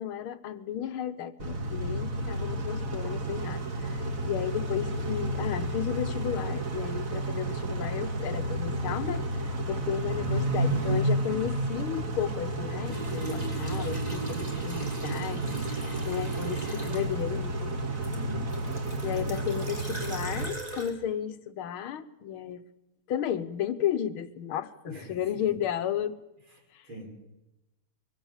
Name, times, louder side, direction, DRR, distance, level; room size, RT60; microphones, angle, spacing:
voice 1, 0.0-9.2 9.7-15.4 16.1-17.8 19.0-22.6 23.1-26.2 26.7-26.8, left 10 dB, 80° left, 12 dB, 1.8 m, -33 dB
Car / Idling / Accelerating revving vroom, 1.4-20.5, right 2 dB, 40° right, 2.0 m, -31 dB
voice 2, 2.1-2.5 11.3-11.7 15.2-15.7 18.1-18.5 18.9-19.3 24.8-25.5 26.5-27.0, right 2 dB, 70° right, 0 dB, 7.0 m, -43 dB
sound 1, 12.9-17.3 18.0-20.9, right 1 dB, 20° right, 3.4 m, -41 dB
23.0 x 16.5 x 7.3 m, 0.98 s
omnidirectional pair, 2.3 m